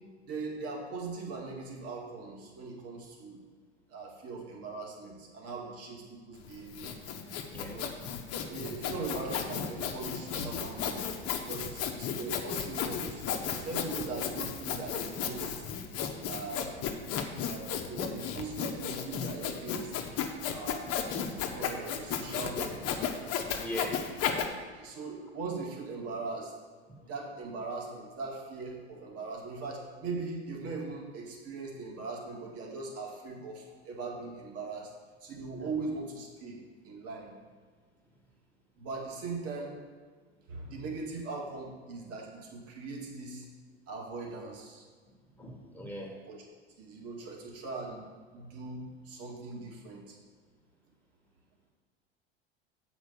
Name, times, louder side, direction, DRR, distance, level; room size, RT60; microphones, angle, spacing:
voice 1, 0.3-3.4 3.9-6.9 7.6-7.9 8.5-11.0 11.3-13.3 13.5-15.7 16.2-16.7 17.4-19.9 20.5-20.9 21.4-23.0 24.6-26.5 27.0-34.9 35.2-36.6 36.8-37.3 38.8-39.8 40.5-43.5 43.9-44.8 46.1-46.4 46.8-48.0 48.3-50.2, right 3 dB, 45° right, -1 dB, 2.2 m, -40 dB
Sawing, 6.4-24.5, left 7 dB, 45° left, 1.1 m, -34 dB
voice 2, 23.6-24.0 27.0-27.1 45.3-46.1, equal, 5° left, -2 dB, 1.7 m, -40 dB
8.0 x 5.1 x 6.6 m, 1.5 s
hypercardioid pair, 80°, 34 cm